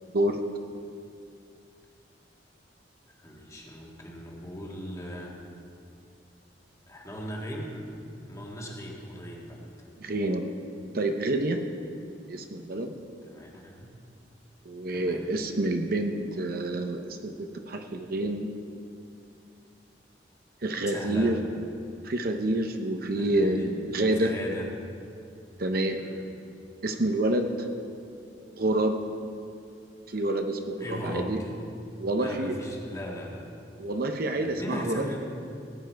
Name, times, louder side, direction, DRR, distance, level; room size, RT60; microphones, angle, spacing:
voice 1, 3.2-5.4 6.9-9.7 13.2-13.9 14.9-15.3 20.9-21.4 23.2-23.7 24.1-24.7 25.9-26.3 30.8-31.6 32.2-33.5 34.3-35.3, equal, 20° left, -2 dB, 1.8 m, -38 dB
voice 2, 10.0-10.5 10.9-11.6 12.3-12.9 14.6-18.5 20.6-21.4 22.0-24.3 25.6-26.0 26.8-27.7 28.6-29.0 30.1-31.4 32.0-32.5 33.8-35.1, right 1 dB, 55° right, 5 dB, 0.8 m, -28 dB
17.5 x 9.2 x 4.6 m, 2.4 s
head